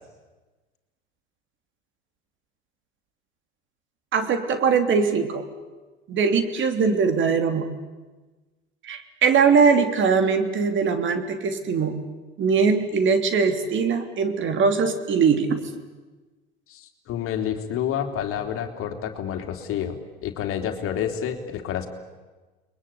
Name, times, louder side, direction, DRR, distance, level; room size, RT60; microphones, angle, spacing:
voice 1, 4.1-5.4 6.1-7.7 8.8-12.0 12.4-15.6, right 5 dB, 40° right, 7 dB, 3.1 m, -21 dB
voice 2, 16.7-21.9, left 9 dB, 45° left, 5 dB, 3.3 m, -29 dB
30.0 x 22.0 x 8.6 m, 1.2 s
hypercardioid pair, 80°, 31 cm